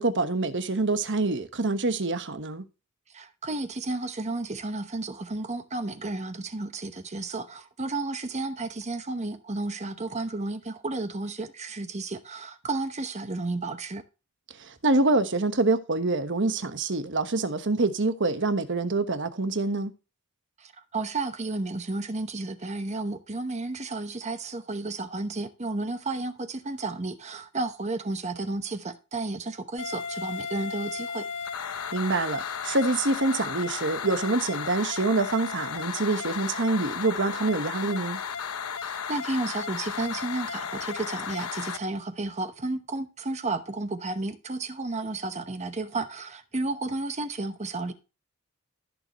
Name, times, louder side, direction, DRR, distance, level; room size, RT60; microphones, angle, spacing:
voice 1, 0.0-2.6 14.6-19.9 31.7-38.2, right 3 dB, 55° right, 1.2 m, -26 dB
voice 2, 3.1-14.0 20.6-31.3 38.8-47.9, right 2 dB, 30° right, 0.9 m, -32 dB
sound 1, 29.8-41.8, left 7 dB, 90° left, 0.8 m, -34 dB
14.5 x 6.9 x 3.0 m
head